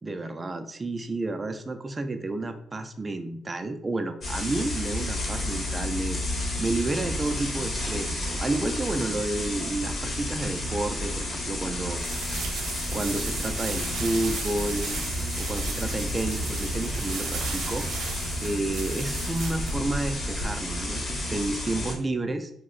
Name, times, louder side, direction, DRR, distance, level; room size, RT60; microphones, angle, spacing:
voice 1, 0.0-12.0 12.9-14.9 15.4-17.9 18.4-22.5, right 2 dB, 25° right, 8 dB, 0.3 m, -31 dB
sound 1, 4.2-21.9, left 1 dB, 45° left, 1.0 m, -31 dB
sound 2, 12.0-20.4, right 3 dB, 85° right, 0.6 m, -35 dB
2.6 x 2.0 x 3.8 m, 0.70 s
cardioid pair, 90°, 0 cm